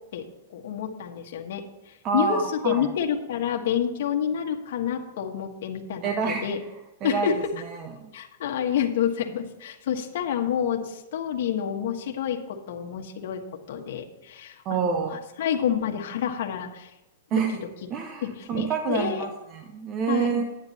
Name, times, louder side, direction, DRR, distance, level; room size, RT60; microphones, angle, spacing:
voice 1, 0.5-6.6 7.0-7.5 8.1-13.4 13.7-16.9 17.3-17.6 18.2-19.3 20.1-20.3, left 8 dB, 55° left, 2 dB, 1.4 m, -28 dB
voice 2, 2.0-2.9 6.0-6.5 7.0-7.3 8.0-8.1 14.6-15.2 17.3-17.6 17.9-20.4, right 5 dB, 20° right, 5 dB, 0.7 m, -27 dB
10.0 x 9.6 x 4.2 m, 1.0 s
supercardioid pair, 175°, 0 cm